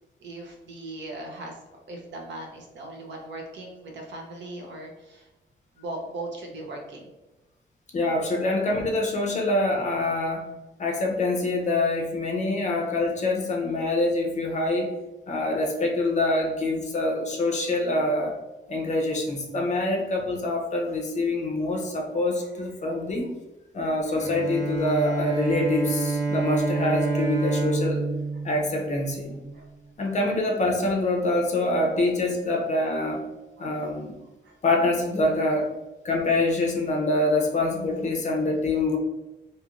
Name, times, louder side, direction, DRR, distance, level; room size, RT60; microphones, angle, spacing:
voice 1, 0.2-1.6 1.9-5.3 5.8-7.1 21.7-21.8 22.4-22.6 24.1-24.2 29.5-29.7 30.1-30.2 33.6-34.0 34.4-34.5, right 2 dB, 80° right, 1 dB, 0.6 m, -39 dB
voice 2, 7.9-10.5 10.8-14.9 15.3-18.3 18.7-23.3 23.7-28.0 28.4-29.4 30.0-33.2 33.6-34.2 34.6-35.7 36.0-39.0, left 2 dB, 40° left, 1 dB, 0.5 m, -25 dB
Bowed string instrument, 24.1-29.5, right 3 dB, 15° right, 0.7 m, -28 dB
2.7 x 2.4 x 2.9 m, 1.0 s
wide cardioid pair, 165°, 18 cm